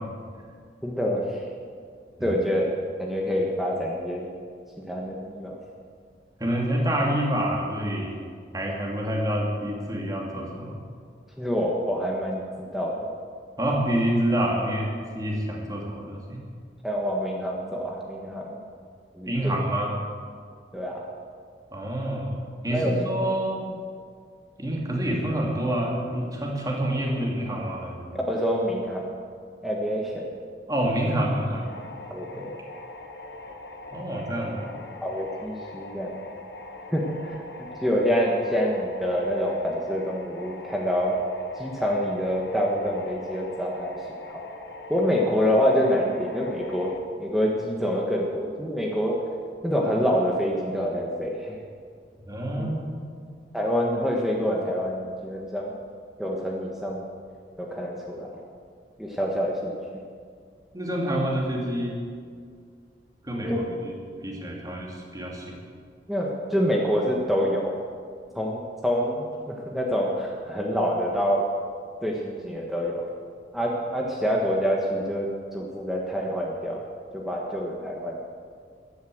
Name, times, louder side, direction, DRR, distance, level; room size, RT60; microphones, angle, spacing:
voice 1, 0.8-1.4 2.2-2.7 3.0-4.3 4.9-5.5 11.4-12.4 12.7-13.1 16.8-18.6 19.1-19.6 20.7-21.0 22.7-23.0 28.3-29.0 29.6-30.3 32.1-32.5 35.0-36.2 36.9-37.4 37.8-41.2 41.6-44.4 44.9-46.9 47.2-49.2 49.6-51.5 52.6-52.7 53.5-55.7 56.2-57.0 57.6-58.3 59.0-59.8 63.4-63.6 66.1-67.8 68.3-71.4 72.0-73.0 73.5-76.8 77.1-78.3, equal, ahead, -2 dB, 1.4 m, -26 dB
voice 2, 6.4-10.7 13.6-14.9 15.1-16.4 19.3-19.9 21.7-22.4 22.6-23.7 24.6-28.2 30.7-31.7 33.9-34.7 52.3-53.0 60.7-62.0 63.2-65.6, right 1 dB, 20° right, -2 dB, 2.8 m, -27 dB
sound 1, 31.6-47.0, left 2 dB, 70° left, 1.4 m, -42 dB
14.0 x 11.5 x 7.9 m, 2.1 s
head